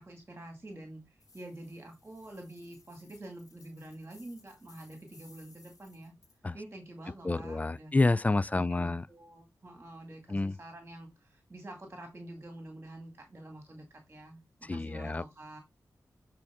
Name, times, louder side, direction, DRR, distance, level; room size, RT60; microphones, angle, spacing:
voice 1, 0.0-6.1 6.5-7.9 8.5-15.6, right 1 dB, 30° right, 2.1 m, -47 dB
sound 1, 1.2-6.4, left 3 dB, 55° left, 2.6 m, -61 dB
voice 2, 7.2-9.1 10.3-10.6 14.6-15.2, left 2 dB, 20° left, 0.3 m, -28 dB
9.3 x 4.5 x 3.5 m
wide cardioid pair, 90°, 7 cm